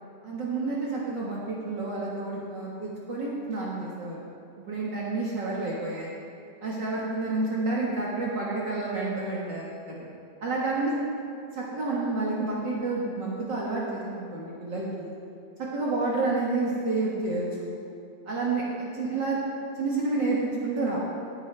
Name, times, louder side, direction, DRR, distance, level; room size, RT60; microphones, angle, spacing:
voice 1, 0.2-4.2 4.7-6.1 6.6-10.0 10.4-11.0 11.5-15.1 15.7-17.8 18.3-19.4 19.8-21.0, right 3 dB, 55° right, -5 dB, 2.2 m, -29 dB
18.0 x 9.6 x 3.4 m, 2.5 s
omnidirectional pair, 2.4 m